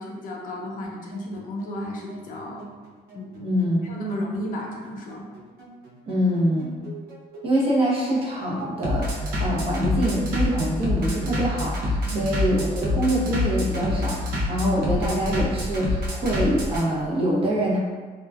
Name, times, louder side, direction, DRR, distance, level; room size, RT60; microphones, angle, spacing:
voice 1, 0.0-2.7 3.1-3.6 3.8-5.3 12.1-12.3, left 1 dB, 55° left, -2 dB, 0.5 m, -33 dB
Bass drum, 0.8-16.8, left 1 dB, 65° right, 0.8 m, -27 dB
voice 2, 3.4-3.8 6.1-6.8 7.4-17.8, equal, 35° right, -5 dB, 0.9 m, -24 dB
2.9 x 2.4 x 2.3 m, 1.5 s
cardioid pair, 110°, 17 cm